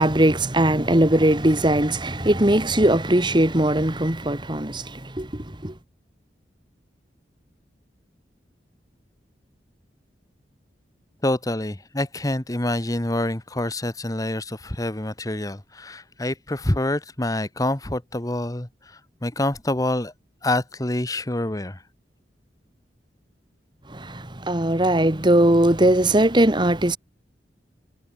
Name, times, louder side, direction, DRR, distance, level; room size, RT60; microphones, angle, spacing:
voice 1, 0.0-5.7 23.9-27.0, right 1 dB, 25° right, 2.2 m, -20 dB
voice 2, 11.2-20.1 20.4-21.8, left 1 dB, 20° left, 1.3 m, -26 dB
head